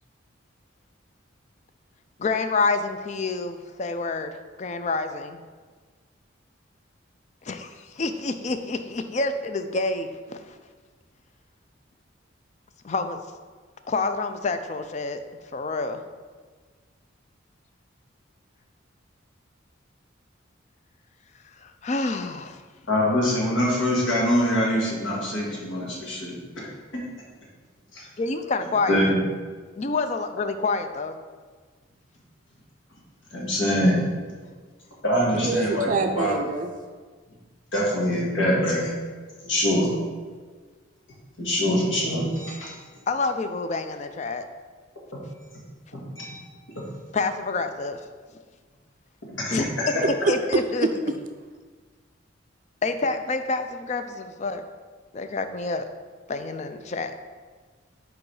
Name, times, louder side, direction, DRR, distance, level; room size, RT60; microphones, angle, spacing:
voice 1, 2.2-4.3 4.6-5.4 7.5-7.7 8.0-10.4 12.8-13.2 13.9-15.2 15.5-16.0 21.8-22.6 28.2-29.0 29.8-31.1 43.1-44.4 47.1-48.0 49.5-49.7 50.3-50.9 52.8-54.6 55.1-55.8 56.3-57.2, left 3 dB, 35° left, 9 dB, 0.4 m, -27 dB
voice 2, 22.9-26.7 26.9-27.0 27.9-28.1 28.6-29.2 33.3-34.0 35.0-36.4 37.7-38.9 39.4-39.9 41.4-42.7 45.1-45.2 45.9-46.4 46.8-46.9 49.2-49.6 49.9-50.0, equal, 75° left, -4 dB, 1.7 m, -24 dB
voice 3, 35.3-36.7 50.2-51.2, right 3 dB, 40° right, 5 dB, 0.4 m, -25 dB
5.0 x 4.7 x 4.8 m, 1.5 s
head